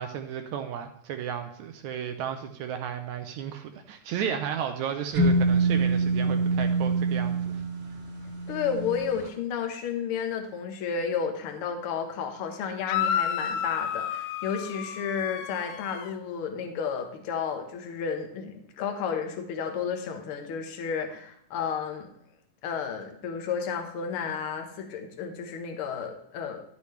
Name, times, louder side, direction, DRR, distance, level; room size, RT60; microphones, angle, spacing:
voice 1, 0.0-7.6, right 8 dB, 75° right, 7 dB, 1.8 m, -34 dB
sound 1, 5.2-9.0, right 3 dB, 50° right, 1.9 m, -25 dB
voice 2, 8.5-22.1 22.6-26.6, left 6 dB, 60° left, 4 dB, 1.5 m, -32 dB
sound 2, 12.9-16.1, left 9 dB, 80° left, 2.0 m, -31 dB
11.5 x 8.3 x 3.2 m, 0.70 s
omnidirectional pair, 3.7 m